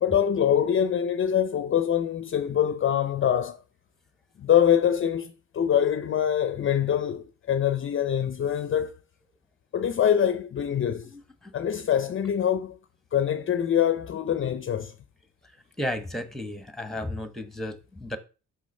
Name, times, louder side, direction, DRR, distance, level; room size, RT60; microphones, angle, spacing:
voice 1, 0.0-3.6 4.4-8.9 9.7-11.1 11.5-12.8 13.1-14.9, left 9 dB, 45° left, 0.6 m, -24 dB
voice 2, 11.0-11.5 15.8-18.2, left 1 dB, ahead, 1.2 m, -34 dB
6.1 x 6.1 x 5.4 m
cardioid pair, 90°, 30 cm